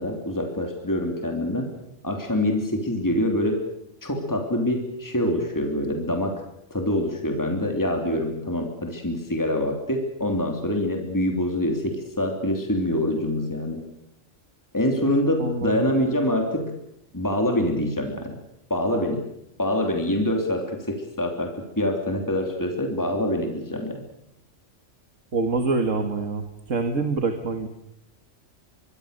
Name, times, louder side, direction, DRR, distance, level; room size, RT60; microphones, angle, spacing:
voice 1, 0.0-1.7 2.0-3.6 4.0-6.4 6.7-13.8 14.7-16.8 17.1-18.4 18.7-19.2 19.6-24.0, left 1 dB, 15° left, 3 dB, 3.1 m, -25 dB
voice 2, 15.4-15.9 25.3-27.7, right 3 dB, 90° right, 6 dB, 2.2 m, -25 dB
24.5 x 23.5 x 6.7 m, 0.82 s
omnidirectional pair, 1.3 m